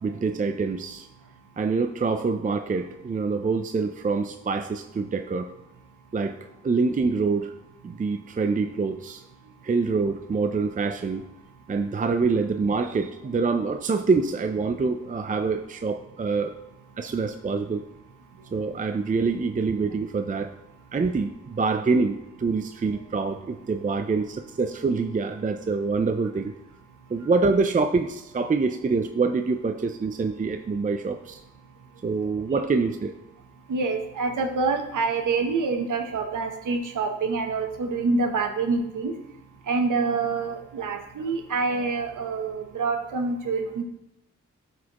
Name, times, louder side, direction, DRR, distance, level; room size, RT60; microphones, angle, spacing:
voice 1, 0.0-1.1 1.6-5.5 6.1-6.4 6.6-7.5 7.8-9.2 9.6-11.3 11.7-16.6 17.0-17.8 18.5-20.5 20.9-26.5 27.1-31.4 32.0-33.2, right 4 dB, 25° right, 7 dB, 0.4 m, -25 dB
voice 2, 33.7-39.1 39.7-43.8, right 4 dB, 85° right, 4 dB, 0.9 m, -26 dB
12.0 x 4.2 x 3.0 m, 0.88 s
cardioid pair, 75°, 30 cm